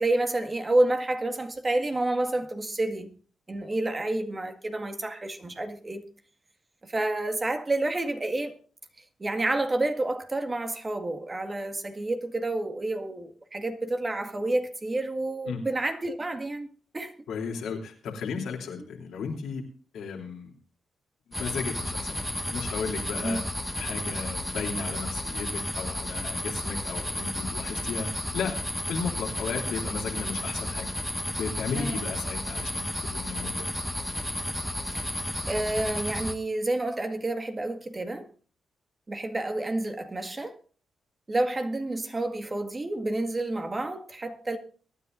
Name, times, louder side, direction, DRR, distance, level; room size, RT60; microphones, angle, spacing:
voice 1, 0.0-3.1 3.5-6.0 6.8-8.5 9.2-16.7 16.9-17.2 23.2-23.4 31.7-32.0 35.5-38.3 39.1-40.6 41.3-44.6, right 2 dB, 30° right, 1.9 m, -29 dB
voice 2, 17.3-19.6 19.9-20.5 21.4-23.4 23.8-28.1 28.3-28.6 28.9-30.9 31.3-33.7, left 5 dB, 85° left, 3.1 m, -35 dB
sound 1, 21.3-36.4, left 1 dB, 5° left, 1.7 m, -32 dB
23.5 x 10.0 x 2.6 m
cardioid pair, 65°, 0 cm